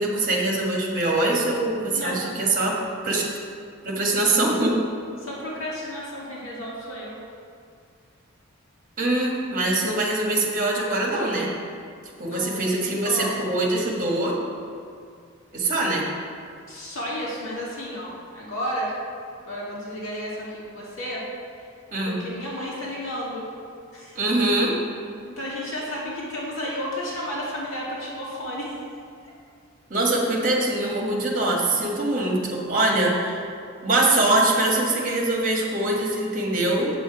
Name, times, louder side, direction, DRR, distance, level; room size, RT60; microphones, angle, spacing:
voice 1, 0.0-3.3 3.8-4.8 9.0-11.5 12.2-14.4 15.5-16.1 21.9-22.1 24.1-24.8 29.9-33.4 33.8-36.9, right 2 dB, 40° right, -2 dB, 1.7 m, -23 dB
voice 2, 1.9-2.3 5.2-7.2 12.3-12.8 13.0-13.3 16.7-18.9 19.4-21.2 22.0-23.5 23.9-24.2 25.3-28.8, equal, 65° left, -6 dB, 2.3 m, -32 dB
8.1 x 7.0 x 4.8 m, 2.3 s
head